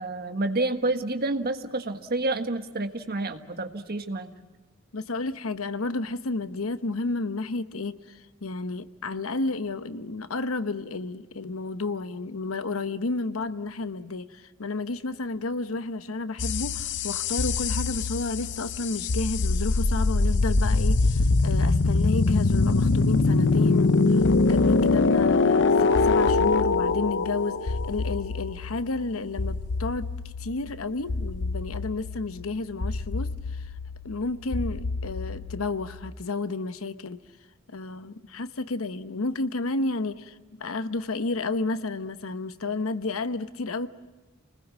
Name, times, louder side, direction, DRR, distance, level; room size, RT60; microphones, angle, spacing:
voice 1, 0.0-4.3, right 2 dB, 50° right, 7 dB, 1.5 m, -29 dB
voice 2, 4.9-30.1 30.4-33.7 34.0-37.2 37.7-43.9, left 3 dB, 85° left, 12 dB, 1.0 m, -31 dB
sound 1, 16.4-36.0, left 3 dB, 60° left, 0.7 m, -24 dB
29.5 x 20.0 x 7.4 m, 1.2 s
head